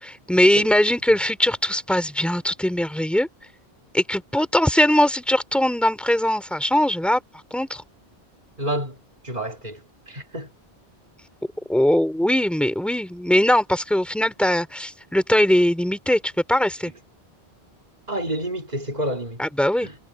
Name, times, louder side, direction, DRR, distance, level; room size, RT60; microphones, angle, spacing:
voice 1, 0.0-3.3 3.9-7.2 7.5-7.8 11.7-16.9 19.4-19.9, left 1 dB, ahead, 3.1 m, -21 dB
voice 2, 8.6-9.0 9.2-9.8 10.1-10.5 18.1-19.4 19.8-20.0, right 1 dB, 40° right, 2.7 m, -29 dB
omnidirectional pair, 1.1 m